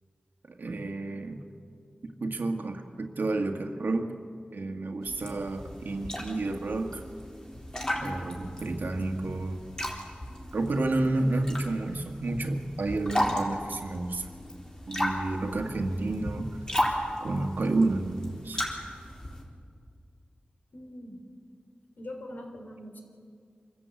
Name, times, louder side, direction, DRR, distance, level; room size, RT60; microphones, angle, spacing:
voice 1, 0.5-1.4 2.2-4.2 4.5-7.0 8.0-9.6 10.5-14.3 14.9-16.6 17.2-18.6, right 2 dB, 75° right, 4 dB, 1.7 m, -30 dB
sound 1, 5.0-19.4, equal, 25° left, 4.1 m, -35 dB
voice 2, 20.7-21.2 22.0-23.0, left 1 dB, 70° left, 3 dB, 3.7 m, -42 dB
25.5 x 14.5 x 8.3 m, 2.2 s
wide cardioid pair, 75°, 3 cm